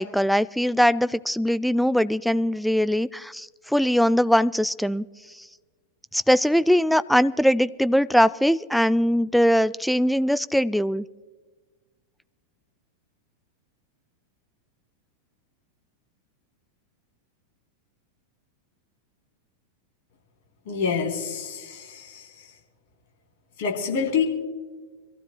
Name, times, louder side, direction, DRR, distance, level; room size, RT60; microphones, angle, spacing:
voice 1, 0.0-5.0 6.1-11.1, equal, ahead, 16 dB, 0.3 m, -21 dB
voice 2, 20.7-22.3 23.6-24.2, left 6 dB, 50° left, 1 dB, 3.5 m, -27 dB
26.5 x 15.0 x 2.3 m, 1.4 s
figure-of-eight pair, 90°, 0 cm